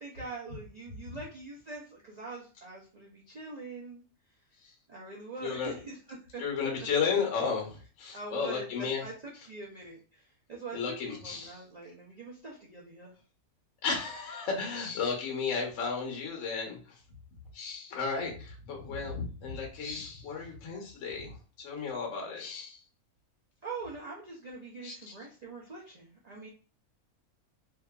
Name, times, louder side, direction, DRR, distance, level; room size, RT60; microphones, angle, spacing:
voice 1, 0.0-4.0 4.9-6.4 8.1-10.2 10.5-13.1 23.6-26.5, right 3 dB, 80° right, -4 dB, 0.3 m, -43 dB
voice 2, 5.4-5.7 6.4-9.0 10.7-11.6 13.8-17.0 17.5-22.8 24.8-24.9, left 5 dB, 65° left, 1 dB, 1.0 m, -33 dB
2.7 x 2.4 x 2.3 m, 0.38 s
omnidirectional pair, 1.5 m